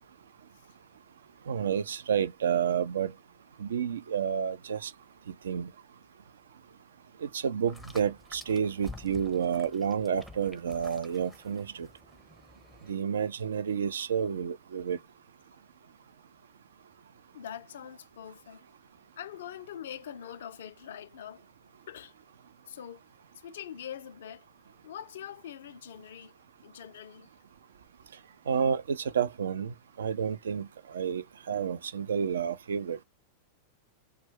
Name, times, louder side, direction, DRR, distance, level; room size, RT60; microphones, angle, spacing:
voice 1, 1.5-3.1 3.6-4.9 5.4-5.7 7.2-11.9 12.9-15.0 28.5-33.0, right 7 dB, 65° right, 0.3 m, -30 dB
sound 1, 7.7-12.9, left 2 dB, ahead, 0.5 m, -50 dB
voice 2, 17.3-18.7 19.2-21.4 21.9-22.1 22.7-23.0 23.3-24.4 24.8-26.3 26.6-27.3, left 10 dB, 60° left, 0.3 m, -43 dB
2.2 x 2.1 x 3.6 m
figure-of-eight pair, 90°, 0 cm